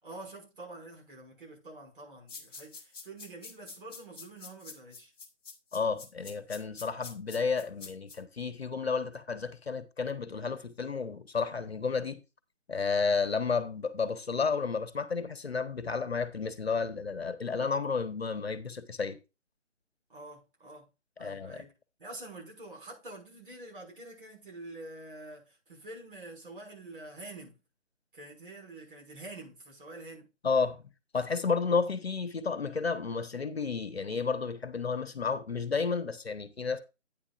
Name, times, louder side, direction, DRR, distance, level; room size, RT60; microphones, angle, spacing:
voice 1, 0.0-5.1 20.1-20.9 21.2-21.7 22.0-27.6 28.1-30.3, right 2 dB, 45° right, 6.0 m, -47 dB
sound 1, 2.3-8.2, left 4 dB, 20° left, 1.5 m, -46 dB
voice 2, 5.7-12.2 12.7-19.2 21.2-21.6 30.4-30.8 31.1-36.8, left 5 dB, 55° left, 1.3 m, -31 dB
11.0 x 9.5 x 2.5 m
figure-of-eight pair, 150°, 37 cm